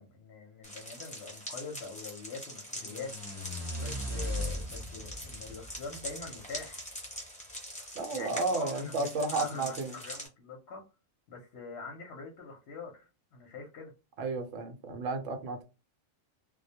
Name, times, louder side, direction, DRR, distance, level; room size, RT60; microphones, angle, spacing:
voice 1, 0.0-6.8 8.1-10.8 11.3-13.9, left 4 dB, 60° left, 0.8 m, -44 dB
sound 1, 0.6-10.3, equal, 5° left, 0.6 m, -43 dB
sound 2, 2.7-6.8, left 1 dB, 25° right, 0.9 m, -38 dB
voice 2, 8.0-9.9 14.2-15.6, right 3 dB, 70° right, 0.9 m, -32 dB
2.2 x 2.1 x 2.7 m
omnidirectional pair, 1.4 m